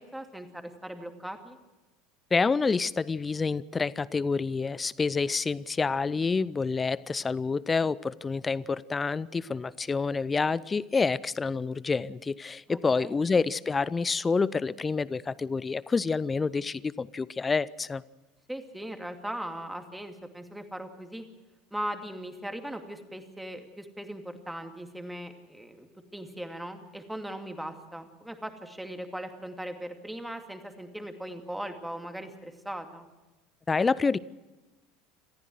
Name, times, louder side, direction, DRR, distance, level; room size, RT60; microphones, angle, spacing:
voice 1, 0.0-1.6 12.7-13.1 18.5-21.2 21.7-33.1, right 1 dB, 5° right, 6 dB, 2.4 m, -39 dB
voice 2, 2.3-18.0 33.7-34.2, left 4 dB, 20° left, 21 dB, 0.6 m, -28 dB
27.5 x 14.5 x 6.4 m, 1.1 s
figure-of-eight pair, 75°, 0 cm